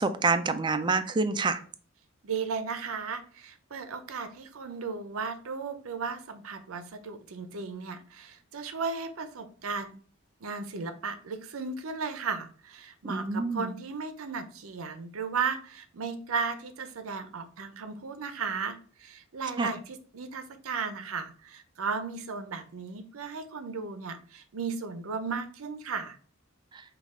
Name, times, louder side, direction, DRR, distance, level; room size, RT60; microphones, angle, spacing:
voice 1, 0.0-1.6 13.1-13.7 19.6-19.7, right 3 dB, 20° right, 10 dB, 0.3 m, -27 dB
voice 2, 2.2-10.0 10.4-26.2, right 5 dB, 80° right, 9 dB, 0.6 m, -35 dB
5.4 x 2.4 x 3.6 m, 0.44 s
head